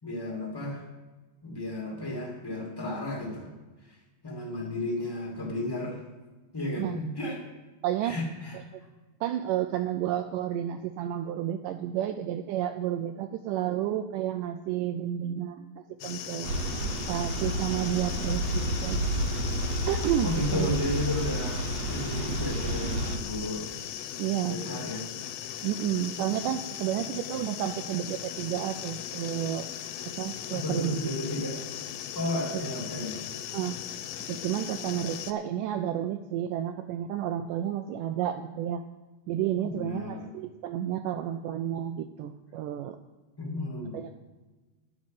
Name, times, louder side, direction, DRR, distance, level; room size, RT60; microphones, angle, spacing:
voice 1, 0.0-0.8 1.4-3.5 3.9-4.0 4.2-6.0 6.5-7.5 8.0-8.6 20.2-23.7 24.5-25.0 30.5-31.7 32.1-33.2 39.6-40.2 43.4-43.9, left 1 dB, 10° left, -2 dB, 1.4 m, -33 dB
voice 2, 7.8-8.2 9.2-15.7 16.0-16.5 17.1-19.0 19.9-20.7 24.2-24.6 25.6-29.7 30.2-31.0 33.5-33.8 34.3-38.8 39.3-43.0 43.9-44.1, right 11 dB, 85° right, 8 dB, 1.8 m, -31 dB
sound 1, 16.0-35.3, left 10 dB, 85° left, 2.5 m, -38 dB
sound 2, 16.4-23.2, right 1 dB, 65° right, 1.8 m, -30 dB
10.0 x 6.3 x 9.0 m, 1.2 s
omnidirectional pair, 4.3 m